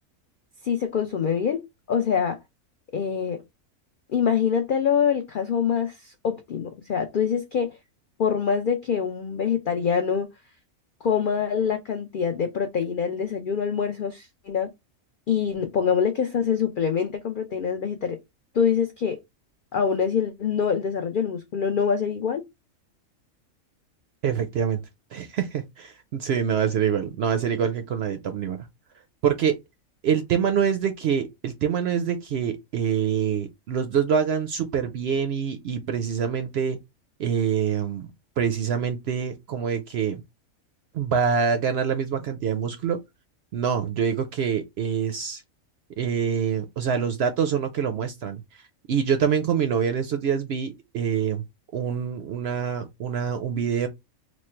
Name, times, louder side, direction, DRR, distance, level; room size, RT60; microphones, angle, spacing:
voice 1, 0.6-2.4 2.9-3.4 4.1-7.8 8.2-10.3 11.0-14.7 15.3-18.2 18.5-19.2 19.7-22.4, left 7 dB, 90° left, 0.4 m, -25 dB
voice 2, 24.2-24.8 25.1-28.6 29.2-29.6 30.0-36.8 37.2-38.1 38.4-40.2 40.9-43.0 43.5-45.4 46.0-48.6 48.9-51.4 51.7-53.9, right 7 dB, 65° right, 0.6 m, -25 dB
3.1 x 2.1 x 4.2 m
omnidirectional pair, 1.5 m